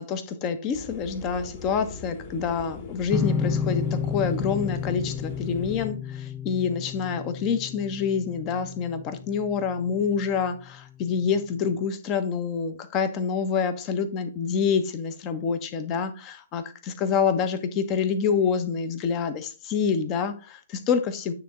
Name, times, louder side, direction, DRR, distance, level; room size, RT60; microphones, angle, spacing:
voice 1, 0.0-21.3, left 6 dB, 30° left, 9 dB, 1.1 m, -27 dB
sound 1, 0.7-5.9, left 3 dB, 45° left, 2.5 m, -41 dB
sound 2, 3.1-10.3, left 6 dB, 15° left, 0.5 m, -31 dB
9.3 x 3.7 x 4.4 m, 0.35 s
figure-of-eight pair, 120°, 0 cm